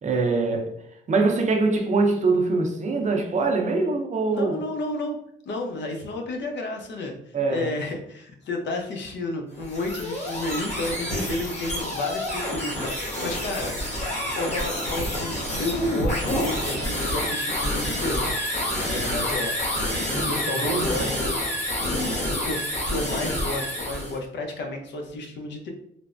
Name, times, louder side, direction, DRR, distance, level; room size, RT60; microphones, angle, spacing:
voice 1, 0.0-0.8 1.1-4.6 7.3-7.7 13.2-13.3 20.1-20.9, right 3 dB, 35° right, 0.5 m, -23 dB
voice 2, 4.3-5.2 5.4-13.8 14.3-18.3 18.8-19.7 20.3-21.4 21.8-25.7, left 2 dB, 65° left, 0.6 m, -32 dB
sound 1, 9.5-24.2, left 1 dB, 35° left, 1.2 m, -28 dB
3.2 x 2.0 x 2.5 m
cardioid pair, 90°, 20 cm